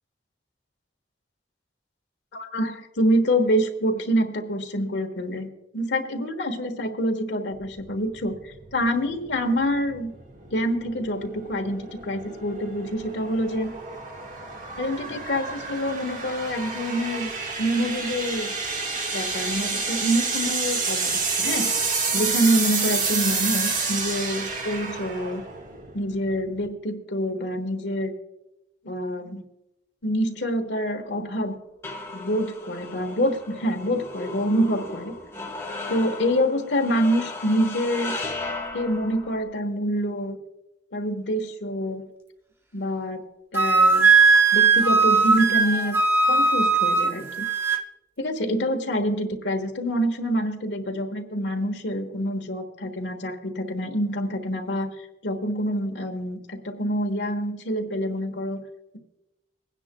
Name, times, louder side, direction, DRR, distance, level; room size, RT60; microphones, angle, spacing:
voice 1, 2.3-5.5 5.7-10.1 10.5-13.7 14.8-17.3 17.6-18.6 19.1-21.7 22.1-25.5 25.9-28.1 28.8-29.4 30.0-31.5 32.1-35.1 35.9-38.2 38.7-40.4 40.9-42.1 42.7-43.2 43.5-44.1 44.5-46.0 46.3-47.5 48.2-54.9 55.2-58.6, equal, 80° left, 5 dB, 1.4 m, -26 dB
sound 1, 7.6-26.7, right 4 dB, 45° right, 1.6 m, -29 dB
sound 2, 30.9-39.4, left 2 dB, 15° left, 1.8 m, -36 dB
Wind instrument woodwind instrument, 43.5-47.8, right 4 dB, 15° right, 0.7 m, -18 dB
23.5 x 9.8 x 2.3 m, 0.92 s
head